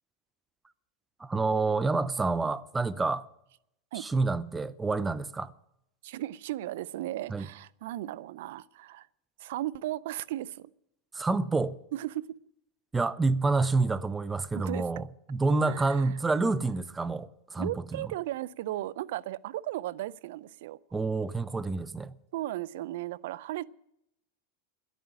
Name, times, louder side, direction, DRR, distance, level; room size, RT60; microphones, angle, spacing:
voice 1, 1.2-3.2 3.9-5.5 7.3-7.5 11.1-11.8 12.9-18.1 20.9-22.1, right 3 dB, 15° right, 0.6 m, -28 dB
voice 2, 6.0-9.1 9.4-10.7 11.9-12.4 14.6-14.9 15.6-16.1 17.6-20.8 22.3-23.7, right 15 dB, 75° right, 0.4 m, -36 dB
11.0 x 9.2 x 9.9 m
hypercardioid pair, 115°, 0 cm